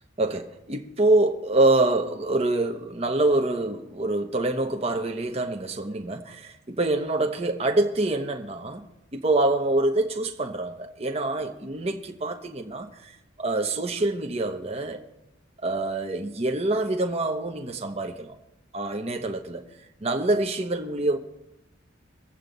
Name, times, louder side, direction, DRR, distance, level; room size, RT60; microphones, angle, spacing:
voice 1, 0.2-8.8 9.1-13.1 13.4-15.0 15.6-18.4 18.7-19.6 20.0-21.2, right 2 dB, 30° right, 0.9 m, -25 dB
23.5 x 8.0 x 4.0 m
head